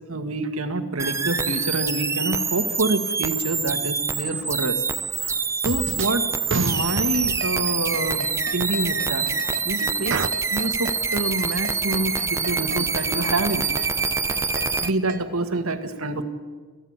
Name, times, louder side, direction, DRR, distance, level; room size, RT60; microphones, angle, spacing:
voice 1, 0.1-4.8 5.2-5.3 5.6-6.2 6.5-9.3 9.6-10.2 10.5-13.7 14.8-16.2, right 2 dB, 80° right, 8 dB, 1.9 m, -27 dB
sound 1, 1.0-14.9, right 5 dB, 15° right, 0.6 m, -26 dB
sound 2, 5.3-5.4 5.6-6.2 6.5-9.6 10.1-10.3, right 4 dB, 60° right, 0.7 m, -30 dB
sound 3, 6.9-15.2, right 3 dB, 40° right, 1.1 m, -37 dB
28.5 x 14.5 x 8.9 m, 1.4 s
head